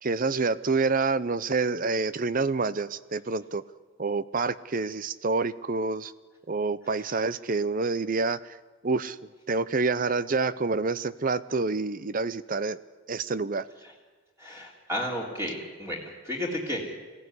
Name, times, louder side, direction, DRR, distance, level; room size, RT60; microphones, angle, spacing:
voice 1, 0.0-3.6 4.0-6.1 6.5-8.4 8.8-9.2 9.5-12.8 13.1-13.6, right 3 dB, 40° right, 16 dB, 0.6 m, -27 dB
voice 2, 14.4-16.9, equal, 10° right, -2 dB, 3.5 m, -33 dB
22.0 x 16.5 x 9.7 m, 1.4 s
head